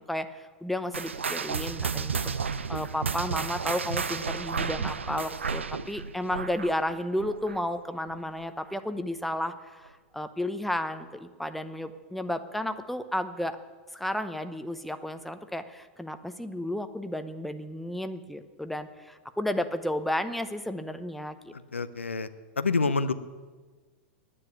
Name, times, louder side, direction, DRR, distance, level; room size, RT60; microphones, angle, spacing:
voice 1, 0.0-2.2 2.7-13.6 13.9-21.5, left 1 dB, ahead, 9 dB, 0.8 m, -33 dB
sound 1, 0.9-7.8 8.1-8.4 9.0-9.1 9.9-10.0, right 5 dB, 85° right, 0.6 m, -32 dB
voice 2, 21.5-22.3 22.6-23.1, left 4 dB, 90° left, 12 dB, 0.6 m, -27 dB
9.9 x 9.7 x 9.4 m, 1.4 s
figure-of-eight pair, 100°, 6 cm